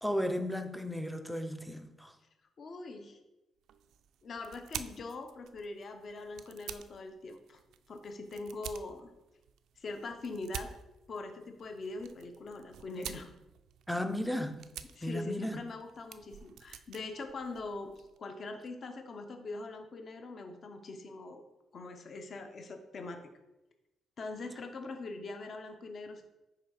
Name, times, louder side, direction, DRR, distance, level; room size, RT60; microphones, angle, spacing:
voice 1, 0.0-2.1 13.9-14.6 15.0-15.6, equal, ahead, 0.4 m, -34 dB
voice 2, 2.6-3.2 4.2-7.6 7.9-9.1 9.8-10.7 11.1-13.4 15.0-21.4 21.7-23.2 24.2-26.2, left 3 dB, 35° left, 0.7 m, -42 dB
sound 1, 3.6-18.2, right 9 dB, 70° right, 0.3 m, -49 dB
5.7 x 4.3 x 4.8 m
cardioid pair, 170°, 0 cm